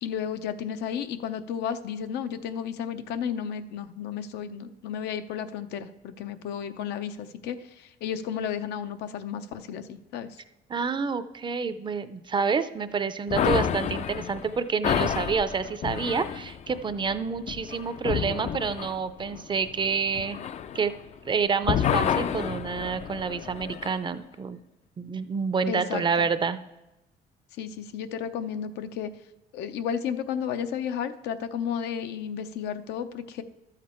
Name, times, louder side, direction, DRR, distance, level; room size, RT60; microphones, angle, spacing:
voice 1, 0.0-10.4 25.7-26.3 27.6-29.1 29.5-33.4, left 8 dB, 80° left, 9 dB, 0.7 m, -33 dB
voice 2, 10.7-20.4 20.7-20.9 21.2-24.6 25.0-26.6, right 5 dB, 30° right, 12 dB, 0.5 m, -28 dB
sound 1, 13.3-21.3 21.6-24.0, left 9 dB, 40° left, 0.4 m, -30 dB
12.0 x 7.5 x 4.4 m, 0.96 s
cardioid pair, 110°, 17 cm